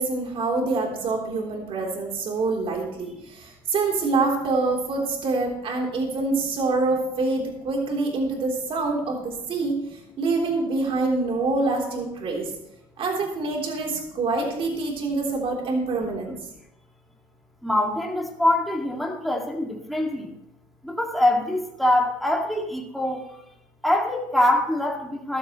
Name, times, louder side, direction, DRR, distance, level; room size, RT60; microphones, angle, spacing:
voice 1, 0.0-12.5 13.0-16.3, right 3 dB, 55° right, 0 dB, 3.7 m, -26 dB
voice 2, 17.6-20.3 20.8-23.4 23.8-25.4, left 1 dB, ahead, 0 dB, 2.3 m, -24 dB
14.5 x 12.5 x 3.2 m, 0.82 s
supercardioid pair, 90°, 12 cm